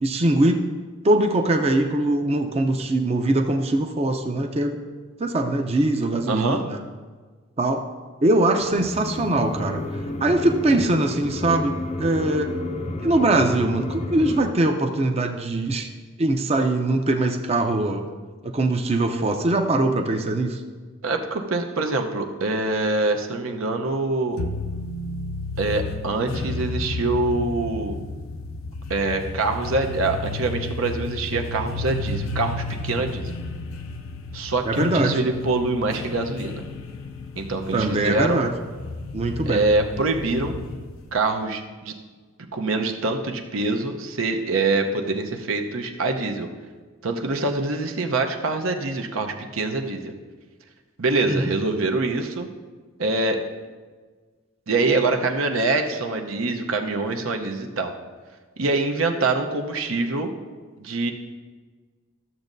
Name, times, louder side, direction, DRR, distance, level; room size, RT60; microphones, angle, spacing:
voice 1, 0.0-0.6 1.0-4.8 5.2-6.8 7.6-7.9 8.2-9.8 10.2-12.5 13.0-15.9 16.2-18.1 18.4-20.6 34.6-35.2 37.7-38.5 39.1-39.7 51.2-51.5, right 2 dB, 30° right, 4 dB, 0.5 m, -22 dB
voice 2, 6.3-6.6 21.0-24.4 25.6-28.0 28.9-33.3 34.3-36.6 37.4-38.4 39.5-40.6 41.1-41.9 42.5-46.5 47.0-50.1 51.0-52.5 53.0-53.4 54.7-57.9 58.6-60.3 60.8-61.1, right 3 dB, 80° right, 4 dB, 0.8 m, -24 dB
sound 1, 8.6-14.5, left 2 dB, 30° left, 0.5 m, -31 dB
sound 2, 24.4-41.2, left 2 dB, 80° left, 0.5 m, -32 dB
13.5 x 7.2 x 2.6 m, 1.4 s
head